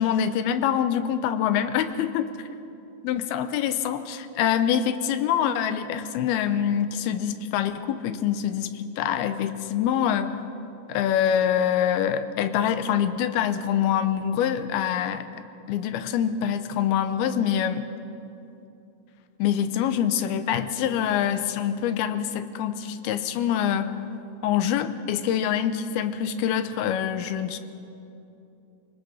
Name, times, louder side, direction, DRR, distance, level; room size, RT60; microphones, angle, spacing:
voice 1, 0.0-2.3 3.0-10.4 10.9-15.3 15.7-17.9 19.4-24.0 24.4-27.6, left 9 dB, 90° left, 11 dB, 2.8 m, -25 dB
24.5 x 19.5 x 6.4 m, 2.8 s
omnidirectional pair, 4.3 m